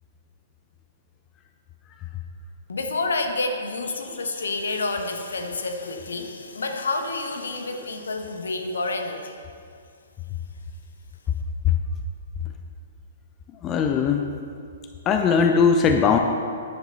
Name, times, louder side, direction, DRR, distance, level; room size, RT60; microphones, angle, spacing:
voice 1, 2.7-9.4, left 3 dB, 65° left, 5 dB, 1.3 m, -29 dB
voice 2, 13.6-14.3 15.1-16.2, left 6 dB, 25° left, 5 dB, 0.7 m, -19 dB
13.5 x 10.0 x 4.2 m, 2.3 s
figure-of-eight pair, 115°, 0 cm